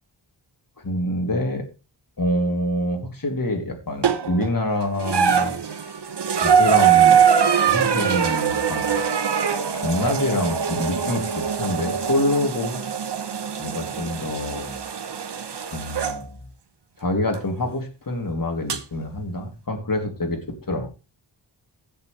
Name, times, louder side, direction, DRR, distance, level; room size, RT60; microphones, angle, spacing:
voice 1, 0.8-1.7 2.2-6.0 6.4-7.2 7.6-9.0 9.7-12.8 13.6-14.8 15.7-16.4 17.0-20.9, left 1 dB, 45° left, 3 dB, 3.1 m, -26 dB
sound 1, 4.0-4.5 5.0-16.2 17.3-17.4 18.7-18.8, right 7 dB, 60° right, 1.2 m, -22 dB
16.5 x 6.8 x 3.4 m, 0.29 s
wide cardioid pair, 70°, 47 cm